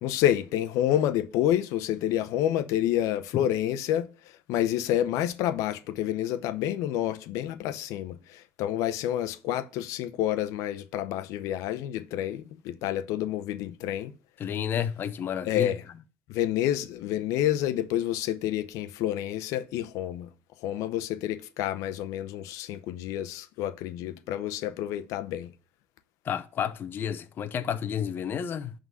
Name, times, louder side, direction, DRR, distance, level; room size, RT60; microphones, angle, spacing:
voice 1, 0.0-4.1 4.5-14.1 15.4-15.8 16.3-20.3 20.6-25.5, left 12 dB, 75° left, 0.7 m, -28 dB
voice 2, 14.4-15.7 26.3-28.7, left 8 dB, 40° left, 0.7 m, -30 dB
11.0 x 3.9 x 6.2 m
cardioid pair, 130°, 6 cm